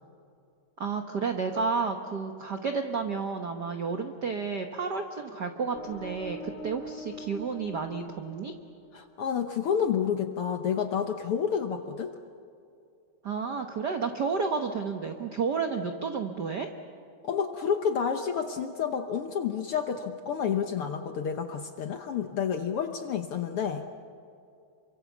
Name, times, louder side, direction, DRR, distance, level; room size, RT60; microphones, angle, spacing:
voice 1, 0.8-8.5 13.2-16.7, right 5 dB, 65° right, 5 dB, 1.0 m, -31 dB
sound 1, 5.7-9.3, right 1 dB, 25° left, 2.4 m, -43 dB
voice 2, 8.9-12.1 17.2-23.8, left 7 dB, 65° left, 6 dB, 1.5 m, -29 dB
28.0 x 24.5 x 7.2 m, 2.5 s
omnidirectional pair, 3.5 m